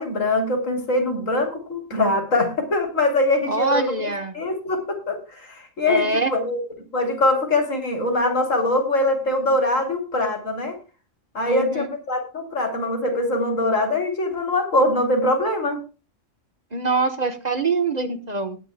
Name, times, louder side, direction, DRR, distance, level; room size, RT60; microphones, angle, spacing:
voice 1, 0.0-3.9 4.3-6.6 6.9-10.7 11.3-15.8, left 2 dB, 80° left, 4 dB, 3.9 m, -23 dB
voice 2, 3.5-4.3 5.9-6.3 11.4-11.9 16.7-18.6, right 3 dB, 35° right, 9 dB, 1.3 m, -24 dB
20.0 x 10.5 x 2.2 m, 0.31 s
omnidirectional pair, 1.3 m